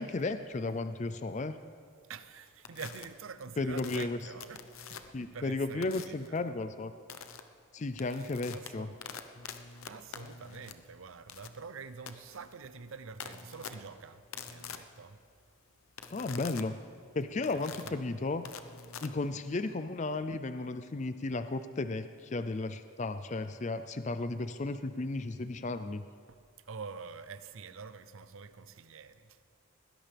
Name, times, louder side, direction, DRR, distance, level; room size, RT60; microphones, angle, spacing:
voice 1, 0.0-1.6 3.6-4.2 5.1-6.9 7.7-8.9 16.1-16.7 17.1-18.4 19.0-26.0, left 3 dB, 35° left, 0.4 m, -34 dB
voice 2, 2.1-6.6 8.0-9.0 9.5-15.2 17.5-18.0 26.3-29.4, right 5 dB, 70° right, 0.6 m, -47 dB
sound 1, 2.6-3.1 3.8-5.3 5.8-6.3 7.1-7.4 7.8-19.7, left 6 dB, 75° left, 0.8 m, -46 dB
21.0 x 17.0 x 3.4 m
head